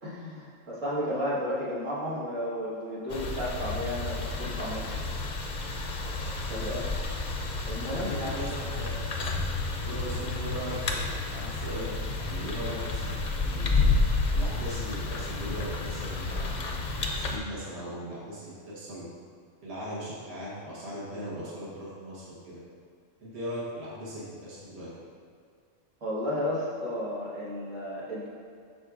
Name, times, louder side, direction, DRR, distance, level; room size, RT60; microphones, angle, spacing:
voice 1, 0.0-5.0 6.5-6.8 7.6-8.7 26.0-28.3, left 1 dB, 80° right, -8 dB, 2.0 m, -33 dB
sound 1, 3.1-17.4, left 3 dB, 45° left, 0.6 m, -30 dB
voice 2, 6.4-6.8 8.2-9.1 9.7-13.8 14.3-16.8 17.1-19.1 19.6-22.6 23.2-24.9, equal, 60° right, -8 dB, 1.6 m, -39 dB
12.0 x 4.4 x 2.5 m, 2.3 s
omnidirectional pair, 1.3 m